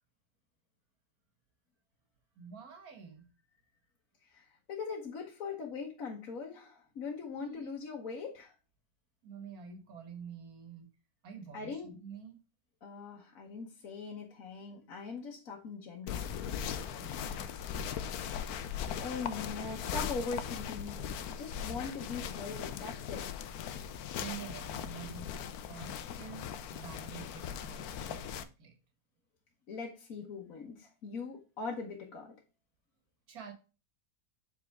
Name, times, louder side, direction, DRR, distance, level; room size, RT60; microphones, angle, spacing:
voice 1, 2.4-3.3 7.3-7.7 9.2-10.9 11.2-12.4 16.7-17.7 24.1-28.8 33.3-33.5, right 7 dB, 80° right, 1.9 m, -48 dB
voice 2, 4.2-8.5 11.5-11.9 12.8-16.3 18.3-21.0 21.4-23.2 29.7-32.3, left 4 dB, 65° left, 1.6 m, -41 dB
sound 1, 16.1-28.4, left 8 dB, 85° left, 1.2 m, -39 dB
7.4 x 4.3 x 3.4 m
omnidirectional pair, 1.5 m